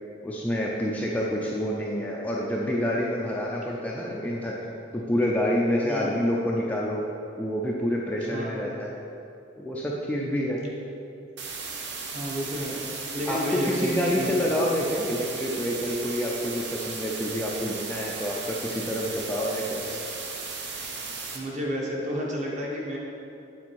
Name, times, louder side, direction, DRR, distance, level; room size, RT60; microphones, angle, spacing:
voice 1, 0.2-4.6 4.9-7.0 7.4-8.9 9.6-10.6 13.3-20.0, equal, 5° left, -4 dB, 0.4 m, -28 dB
sound 1, 11.4-21.4, right 4 dB, 55° right, 0.8 m, -36 dB
voice 2, 12.1-12.8 13.1-14.6 21.3-23.0, equal, 35° right, -3 dB, 1.1 m, -31 dB
8.5 x 4.1 x 4.6 m, 2.7 s
head